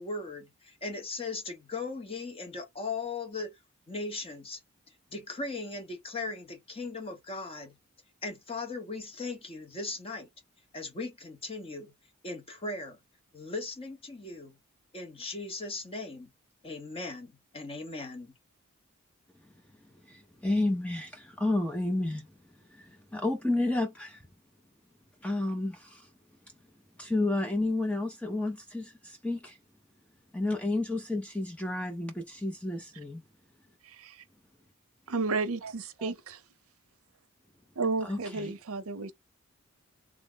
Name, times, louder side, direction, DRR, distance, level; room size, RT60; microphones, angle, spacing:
voice 1, 0.0-3.6 3.9-4.6 5.1-7.8 8.2-10.3 10.7-11.9 12.2-13.0 13.3-14.6 14.9-16.3 16.6-18.3, left 3 dB, 25° left, 0.8 m, -38 dB
voice 2, 20.0-22.3 22.6-24.3 25.2-26.1 27.0-29.6 30.3-33.2 36.0-36.1 38.0-38.5, left 2 dB, 5° left, 0.4 m, -31 dB
voice 3, 33.8-34.2 35.1-36.4 37.8-39.1, right 3 dB, 75° right, 0.6 m, -32 dB
3.5 x 2.0 x 3.7 m
head